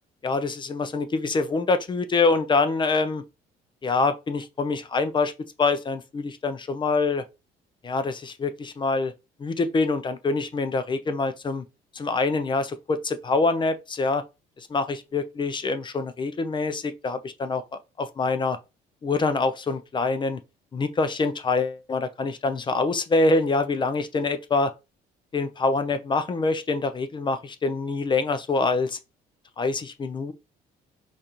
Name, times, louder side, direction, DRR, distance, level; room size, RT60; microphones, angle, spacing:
voice 1, 0.2-3.2 3.8-5.3 5.6-7.2 7.8-9.1 9.4-11.6 11.9-14.2 14.6-17.6 18.0-18.6 19.0-20.4 20.7-24.7 25.3-29.0 29.6-30.3, left 3 dB, 30° left, 0.5 m, -25 dB
5.0 x 2.5 x 2.8 m
cardioid pair, 110°, 17 cm